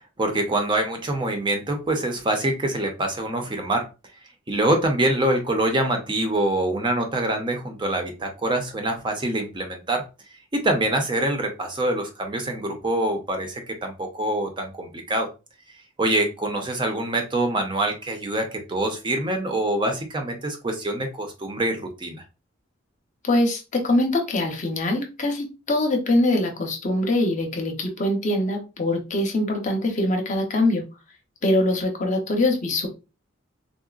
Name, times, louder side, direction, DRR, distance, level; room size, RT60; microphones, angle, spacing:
voice 1, 0.2-3.9 4.5-10.0 10.5-15.3 16.0-22.2, right 1 dB, 25° right, 4 dB, 0.6 m, -25 dB
voice 2, 23.2-30.8 31.4-32.9, left 1 dB, 40° left, 3 dB, 0.7 m, -23 dB
3.7 x 2.0 x 2.4 m, 0.29 s
head